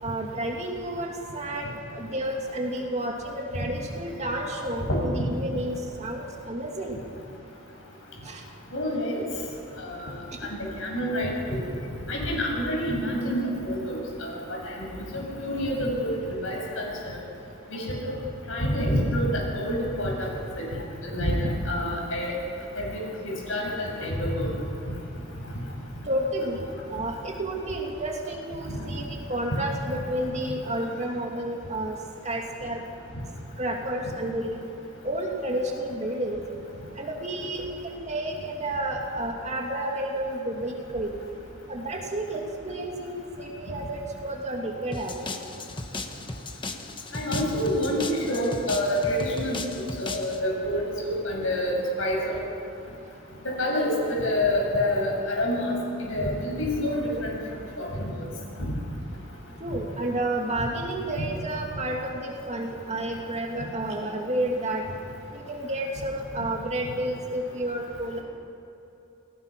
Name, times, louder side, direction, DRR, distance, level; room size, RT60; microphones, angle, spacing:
voice 1, 0.0-7.0 8.2-8.4 10.4-10.5 26.0-32.0 32.2-32.8 33.6-34.6 35.0-36.4 37.0-41.1 41.7-45.3 59.6-64.8 65.3-68.2, right 1 dB, 30° right, 0 dB, 2.5 m, -31 dB
voice 2, 8.7-9.2 9.9-10.1 10.6-11.6 12.1-16.1 16.4-17.2 17.7-18.1 18.5-20.3 20.6-20.7 21.0-21.4 21.7-22.3 22.8-22.9 23.2-24.5 28.7-29.0 47.1-51.7 52.0-52.4 53.4-55.8 56.1-57.4 57.8-58.1 58.6-58.7 61.2-61.3, left 1 dB, 65° left, -1 dB, 7.3 m, -27 dB
sound 1, 44.9-50.4, left 2 dB, 20° left, 1.3 m, -36 dB
28.0 x 18.5 x 6.1 m, 3.0 s
head